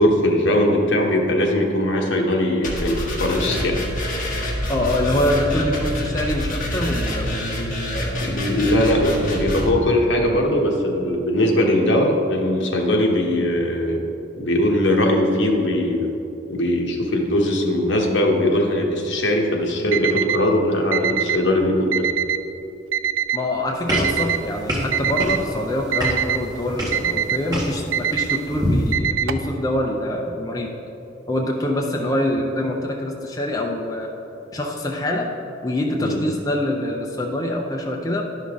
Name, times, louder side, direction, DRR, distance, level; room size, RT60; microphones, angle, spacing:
voice 1, 0.0-3.8 8.2-14.1 14.4-16.2 16.5-22.1 36.0-36.2, left 1 dB, 70° left, 1 dB, 1.1 m, -20 dB
sound 1, 2.6-9.7, left 1 dB, 45° left, 1.4 m, -26 dB
voice 2, 4.7-8.2 23.3-30.7 31.3-34.1 34.5-35.3 35.6-38.2, left 1 dB, 20° left, 0 dB, 0.5 m, -25 dB
Alarm, 19.9-20.4 20.9-21.4 21.9-22.4 22.9-23.4 23.9-24.4 24.9-25.4 25.9-26.4 26.9-27.4 27.9-28.4 28.9-29.5, right 9 dB, 85° right, 0.4 m, -23 dB
sound 2, 23.9-28.9, equal, 20° right, 1.4 m, -27 dB
11.5 x 5.5 x 3.7 m, 3.0 s
head